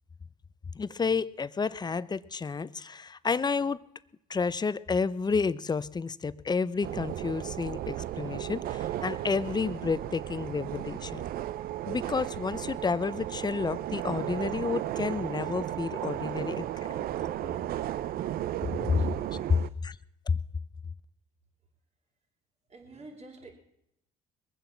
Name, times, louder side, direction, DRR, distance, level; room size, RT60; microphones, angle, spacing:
voice 1, 0.7-3.8 4.3-11.2 11.9-17.1 18.7-19.0 19.5-20.0 20.3-20.4, left 5 dB, 25° left, 0.7 m, -30 dB
sound 1, 6.8-19.7, right 12 dB, 65° right, 0.6 m, -34 dB
voice 2, 22.7-23.5, right 2 dB, 40° right, 3.7 m, -49 dB
21.5 x 7.6 x 7.3 m
supercardioid pair, 75°, 17 cm